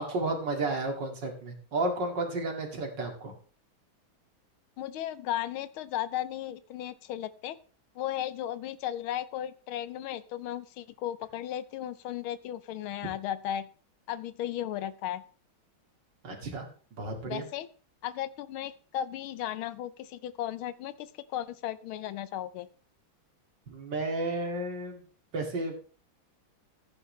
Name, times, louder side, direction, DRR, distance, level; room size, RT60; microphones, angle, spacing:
voice 1, 0.0-3.3 16.2-16.7 16.9-17.4 23.7-25.0 25.3-25.7, right 2 dB, 60° right, 3 dB, 2.8 m, -32 dB
voice 2, 4.8-7.6 7.9-13.7 14.1-15.2 17.3-17.7 18.0-22.7, left 11 dB, 85° left, 15 dB, 1.6 m, -35 dB
15.0 x 9.7 x 3.2 m, 0.41 s
omnidirectional pair, 2.2 m